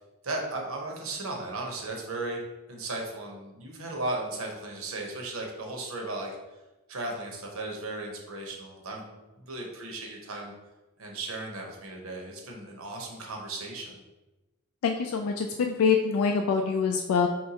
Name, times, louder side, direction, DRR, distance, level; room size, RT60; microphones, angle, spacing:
voice 1, 0.2-2.4 2.7-6.3 6.9-10.5 11.0-14.0, right 2 dB, 75° right, 0 dB, 0.9 m, -36 dB
voice 2, 14.8-17.3, left 5 dB, 85° left, 3 dB, 0.3 m, -25 dB
4.5 x 3.1 x 2.9 m, 1.1 s
head